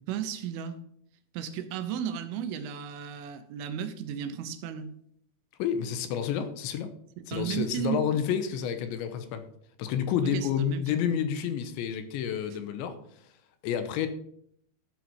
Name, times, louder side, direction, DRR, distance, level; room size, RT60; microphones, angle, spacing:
voice 1, 0.1-0.8 1.3-4.9 7.2-8.2 10.3-10.8, right 8 dB, 90° right, 10 dB, 3.5 m, -34 dB
voice 2, 5.6-6.9 7.3-9.4 9.8-13.0 13.6-14.1, left 8 dB, 80° left, 9 dB, 3.1 m, -29 dB
12.5 x 5.9 x 5.7 m, 0.68 s
omnidirectional pair, 5.5 m